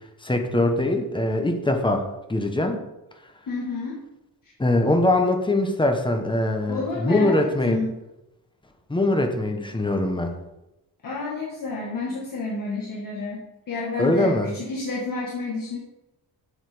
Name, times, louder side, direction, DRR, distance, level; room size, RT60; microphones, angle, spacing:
voice 1, 0.2-2.8 4.6-7.8 8.9-10.3 14.0-14.5, left 1 dB, 10° left, 4 dB, 1.0 m, -22 dB
voice 2, 3.5-4.0 6.7-8.0 11.0-15.8, left 3 dB, 50° left, -3 dB, 1.6 m, -30 dB
8.0 x 6.5 x 5.0 m, 0.93 s
wide cardioid pair, 175°, 41 cm